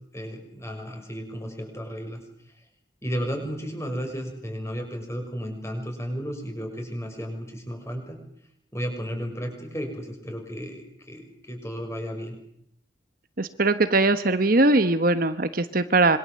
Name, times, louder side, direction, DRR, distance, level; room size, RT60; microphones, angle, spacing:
voice 1, 0.1-2.2 3.0-8.2 8.7-12.4, equal, 15° left, 4 dB, 6.4 m, -33 dB
voice 2, 13.4-16.2, right 2 dB, 50° right, 10 dB, 1.2 m, -21 dB
26.5 x 24.5 x 7.7 m, 0.71 s
head